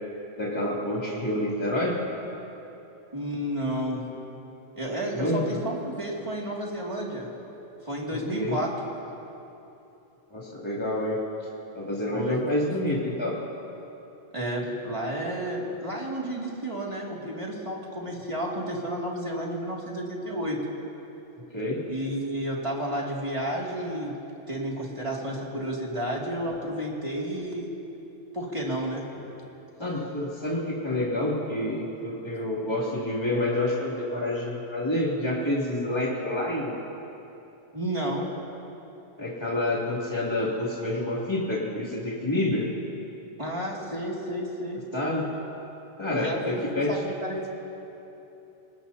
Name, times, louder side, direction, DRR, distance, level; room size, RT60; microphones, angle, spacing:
voice 1, 0.4-2.0 5.1-5.6 8.1-8.6 10.3-11.2 11.7-13.4 21.5-21.8 29.8-36.8 39.2-42.7 44.9-45.2 46.0-47.0, left 1 dB, 20° left, -6 dB, 2.9 m, -28 dB
voice 2, 3.1-4.0 4.7-7.3 7.8-8.7 12.1-12.4 14.3-20.6 21.9-24.2 24.5-27.7 28.3-29.0 37.7-38.3 43.4-44.8 46.1-47.5, right 1 dB, 25° right, -3 dB, 2.5 m, -31 dB
26.5 x 19.5 x 2.8 m, 3.0 s
omnidirectional pair, 1.2 m